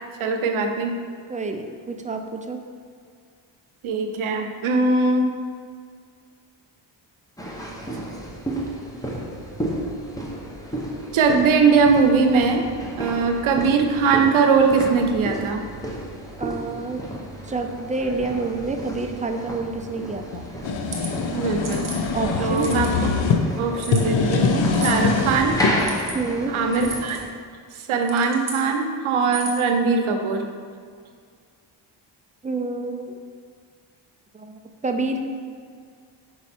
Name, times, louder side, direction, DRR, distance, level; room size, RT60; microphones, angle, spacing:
voice 1, 0.2-1.0 3.8-5.3 11.1-12.7 13.0-15.6 21.3-21.9 22.4-22.9 23.6-25.6 26.5-27.2 27.9-30.4, right 4 dB, 85° right, 4 dB, 0.7 m, -20 dB
voice 2, 1.3-2.6 16.4-17.0 17.4-20.5 22.1-22.7 26.1-26.5 32.4-33.1 34.3-35.3, right 3 dB, 15° right, 4 dB, 0.4 m, -28 dB
sound 1, 7.4-27.3, equal, 5° left, 0.8 m, -32 dB
sound 2, 20.3-23.4 23.8-25.7, left 4 dB, 65° left, 0.6 m, -23 dB
sound 3, 20.7-21.1 21.6-22.0 22.5-23.0 23.8-24.0 24.7-25.0 25.7-26.2 26.7-27.2 27.9-28.6 29.2-29.7, right 2 dB, 40° right, 1.0 m, -35 dB
5.2 x 4.7 x 4.2 m, 2.1 s
wide cardioid pair, 105°, 48 cm